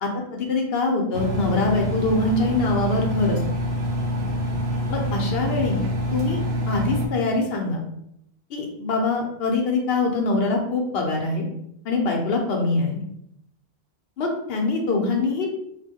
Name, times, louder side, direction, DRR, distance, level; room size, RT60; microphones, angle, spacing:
voice 1, 0.0-3.4 4.9-6.4 6.7-7.8 8.5-11.5 11.8-13.0 14.2-15.5, left 3 dB, 75° left, 1 dB, 0.8 m, -24 dB
Engine, 1.1-7.1, equal, 85° right, 0.8 m, -26 dB
2.3 x 2.1 x 3.5 m, 0.76 s
omnidirectional pair, 1.0 m